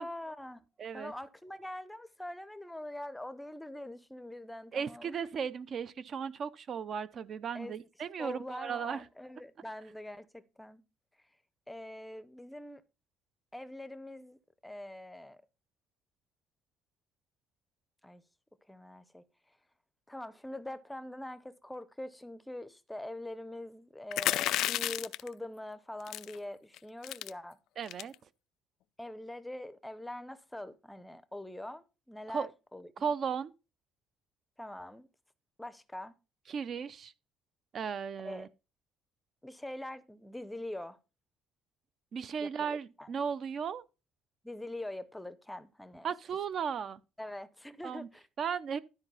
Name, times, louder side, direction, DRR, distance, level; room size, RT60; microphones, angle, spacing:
voice 1, 0.0-0.6 0.9-5.2 7.5-7.8 8.2-10.8 11.7-12.8 13.5-14.4 14.6-15.4 18.0-18.2 18.7-19.2 20.1-27.6 29.0-33.1 34.6-35.1 35.6-36.1 38.2-38.5 39.4-41.0 42.4-43.1 44.4-46.1 47.2-48.2, left 1 dB, 5° left, 0.6 m, -43 dB
voice 2, 0.8-1.1 4.7-9.0 27.8-28.1 32.3-32.5 33.0-33.5 36.5-37.1 37.7-38.5 42.1-43.8 46.0-47.0 47.8-48.1 48.4-48.8, right 7 dB, 40° right, 0.5 m, -36 dB
sound 1, 24.1-25.3 26.1-26.4 26.7-26.8 27.0-27.3 27.9-28.1, left 14 dB, 70° left, 0.4 m, -31 dB
12.5 x 4.9 x 5.5 m
cardioid pair, 145°, 0 cm